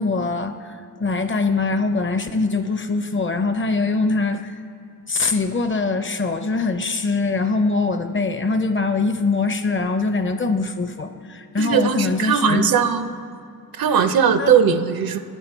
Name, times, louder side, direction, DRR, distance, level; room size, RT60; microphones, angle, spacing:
voice 1, 0.0-4.6 5.1-12.7 14.4-14.5, left 3 dB, 35° left, 9 dB, 0.6 m, -23 dB
voice 2, 11.6-13.1 13.8-15.2, right 7 dB, 70° right, 10 dB, 0.6 m, -19 dB
10.0 x 7.2 x 4.4 m, 2.5 s
cardioid pair, 80°, 37 cm